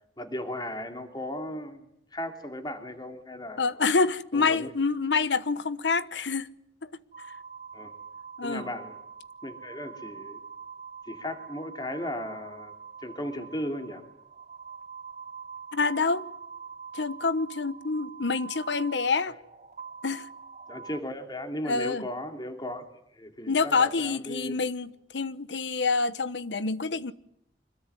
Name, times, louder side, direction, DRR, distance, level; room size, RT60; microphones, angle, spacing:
voice 1, 0.2-1.8 2.1-3.7 4.3-4.7 7.7-7.9 8.4-9.0 9.4-10.4 11.1-12.7 13.0-14.0 20.7-22.9 23.1-24.5, left 1 dB, 25° left, 3.0 m, -36 dB
voice 2, 3.6-6.5 6.8-6.9 8.4-8.7 15.7-16.3 16.9-19.3 20.0-20.3 21.6-22.0 23.5-27.1, left 4 dB, 90° left, 1.1 m, -27 dB
sound 1, 7.1-21.0, right 6 dB, 45° right, 1.9 m, -44 dB
26.0 x 21.0 x 9.9 m
head